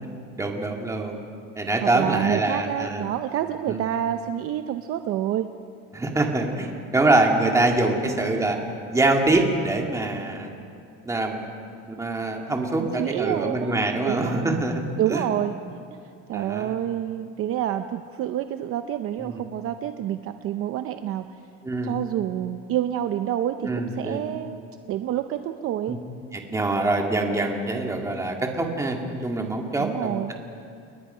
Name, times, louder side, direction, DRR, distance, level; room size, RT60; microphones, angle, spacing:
voice 1, 0.4-1.2 1.6-3.0 3.7-3.8 5.9-8.6 8.9-10.5 11.1-11.4 11.9-14.8 15.1-15.3 16.3-16.8 19.2-19.4 21.6-22.0 23.6-24.2 25.9-26.0 26.3-30.4, right 2 dB, 10° right, 2 dB, 2.1 m, -24 dB
voice 2, 1.8-5.5 12.8-14.6 15.0-15.5 16.3-21.2 21.8-26.0 29.8-30.3, right 11 dB, 45° right, 8 dB, 0.7 m, -28 dB
29.0 x 20.5 x 5.6 m, 2.5 s
cardioid pair, 165°, 32 cm